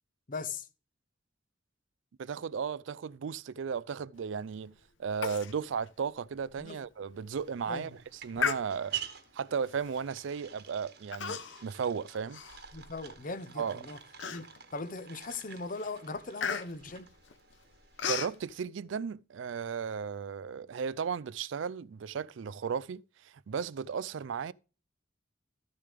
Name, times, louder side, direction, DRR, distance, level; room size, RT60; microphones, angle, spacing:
voice 1, 0.3-0.7 6.6-6.8 7.7-7.9 12.7-14.0 14.3-17.1, left 3 dB, 45° left, 0.8 m, -39 dB
voice 2, 2.2-9.0 9.3-12.4 13.6-13.8 18.0-24.5, right 6 dB, 75° right, 0.4 m, -35 dB
Human voice, 5.2-5.5 5.9-6.0 6.5-6.6 7.1-7.4 8.4-9.1 9.9-10.1 11.1-11.7 12.1-13.1 13.6-13.7 14.2-14.8 15.2-15.5 15.7-18.4, left 6 dB, 70° left, 0.8 m, -35 dB
sound 1, 7.3-18.6, right 10 dB, 55° right, 1.3 m, -48 dB
13.5 x 6.7 x 3.4 m
head